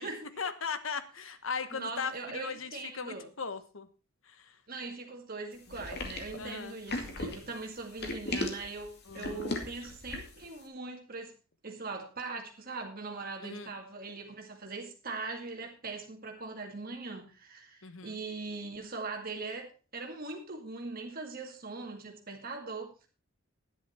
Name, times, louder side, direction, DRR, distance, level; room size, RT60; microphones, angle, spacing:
voice 1, 0.4-3.9 4.3-4.5 6.4-6.8 9.1-9.6 13.4-13.7 17.8-18.2, left 5 dB, 70° left, 1.2 m, -38 dB
voice 2, 1.7-3.3 4.7-11.3 11.6-23.1, right 3 dB, 45° right, 2.0 m, -41 dB
sound 1, 5.7-10.4, left 2 dB, 50° left, 2.3 m, -37 dB
11.5 x 10.0 x 4.3 m
head